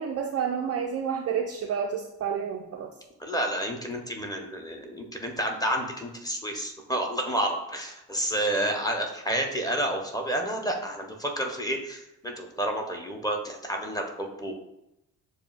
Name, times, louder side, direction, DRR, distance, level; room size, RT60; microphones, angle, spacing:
voice 1, 0.0-2.9, right 7 dB, 35° right, 1 dB, 0.4 m, -30 dB
voice 2, 3.2-14.6, right 1 dB, 10° left, 1 dB, 0.8 m, -30 dB
6.9 x 2.3 x 2.4 m, 0.87 s
figure-of-eight pair, 45°, 48 cm